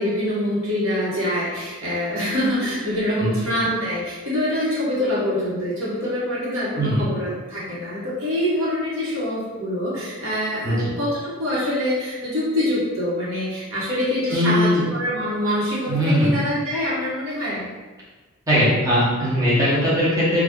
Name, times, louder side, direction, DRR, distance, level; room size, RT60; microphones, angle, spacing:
voice 1, 0.0-17.6, left 1 dB, 85° right, -7 dB, 1.1 m, -25 dB
voice 2, 14.3-14.8 15.9-16.3 18.5-20.4, equal, 15° right, -9 dB, 0.8 m, -19 dB
2.8 x 2.3 x 3.5 m, 1.3 s
head